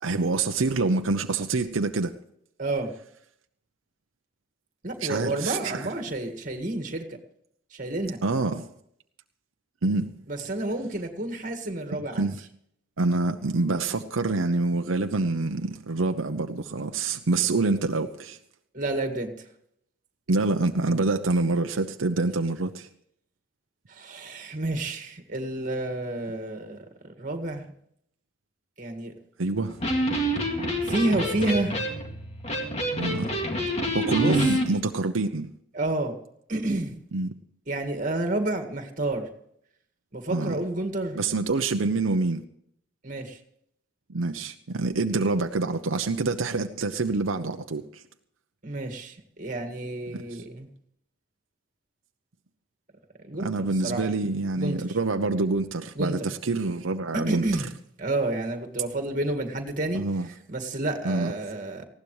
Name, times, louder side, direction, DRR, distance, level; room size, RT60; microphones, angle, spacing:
voice 1, 0.0-2.1 5.0-5.9 8.2-8.7 9.8-10.2 11.9-12.4 13.0-18.4 20.3-22.9 29.4-29.8 33.0-33.3 33.9-35.5 37.1-37.3 40.3-40.6 41.2-42.4 44.1-48.0 50.1-50.4 53.4-57.7 59.9-60.3 61.0-61.3, right 3 dB, 85° right, 0.8 m, -26 dB
voice 2, 2.6-2.9 4.8-7.2 7.7-8.2 10.3-12.3 18.7-19.3 23.9-27.7 28.8-29.1 30.8-31.8 34.2-34.4 35.7-36.2 36.5-37.0 37.7-39.3 40.1-41.2 43.0-43.4 48.6-50.7 53.2-54.1 54.6-54.8 56.0-56.2 57.1-57.7 58.0-60.0 60.5-61.8, right 2 dB, 40° right, 1.9 m, -30 dB
Electric guitar, 29.7-34.7, equal, 30° left, 2.3 m, -27 dB
19.0 x 16.0 x 3.2 m
head